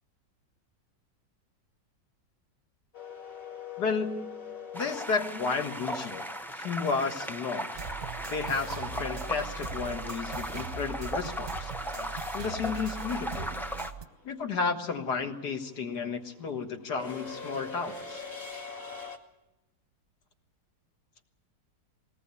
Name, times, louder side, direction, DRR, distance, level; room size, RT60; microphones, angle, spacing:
sound 1, 2.9-7.0 9.4-9.5 10.8-11.1 11.4-19.2, left 5 dB, 35° left, 2.2 m, -43 dB
voice 1, 3.8-4.3 4.7-6.2 6.5-7.7 8.3-11.7 12.3-13.5 14.3-18.2, left 5 dB, 65° left, 5 dB, 2.2 m, -32 dB
sound 2, 4.7-13.9, equal, 5° left, 0.4 m, -37 dB
sound 3, 7.7-14.0, right 6 dB, 40° right, 0.8 m, -40 dB
20.5 x 18.0 x 8.4 m, 0.98 s
omnidirectional pair, 1.9 m